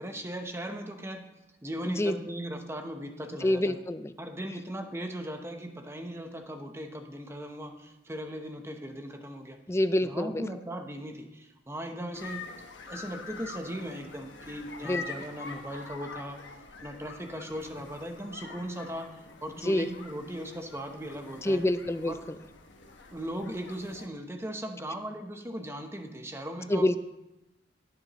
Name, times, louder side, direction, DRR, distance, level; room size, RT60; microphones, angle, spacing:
voice 1, 0.0-1.3 1.6-3.8 4.2-9.6 10.0-12.5 12.9-16.4 16.8-21.6 22.0-22.3 23.1-26.9, equal, 15° right, 5 dB, 0.8 m, -38 dB
voice 2, 3.4-4.1 9.7-10.3 14.8-15.0 19.7-19.9 21.4-22.1 26.7-27.0, left 1 dB, 15° left, 12 dB, 0.4 m, -26 dB
sound 1, 12.1-24.1, left 4 dB, 75° left, 1.2 m, -45 dB
19.0 x 6.9 x 3.0 m, 0.92 s
head